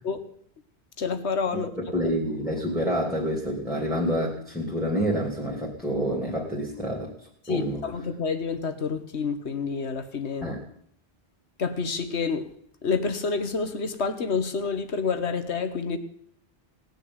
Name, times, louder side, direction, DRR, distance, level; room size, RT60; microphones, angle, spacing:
voice 1, 1.0-1.7 7.4-10.5 11.6-12.5 12.8-16.0, left 5 dB, 75° left, 10 dB, 1.6 m, -28 dB
voice 2, 1.9-7.1 7.5-7.8 10.4-10.6, equal, ahead, -2 dB, 2.8 m, -27 dB
18.0 x 6.7 x 9.6 m, 0.66 s
omnidirectional pair, 1.1 m